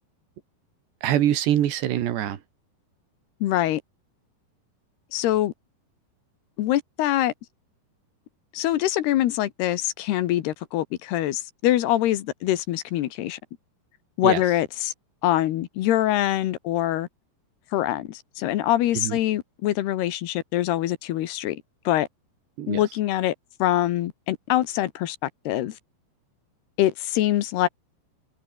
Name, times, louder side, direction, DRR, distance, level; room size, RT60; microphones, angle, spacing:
voice 1, 1.0-2.4 14.2-14.4 18.9-19.2 22.6-22.8, right 11 dB, 90° right, 4.2 m, -24 dB
voice 2, 3.4-3.8 5.1-5.5 6.6-7.3 8.5-13.4 14.2-14.9 15.2-17.1 17.7-22.1 22.7-23.3 23.6-25.8 26.8-27.7, left 13 dB, 80° left, 3.3 m, -24 dB
omnidirectional pair, 4.8 m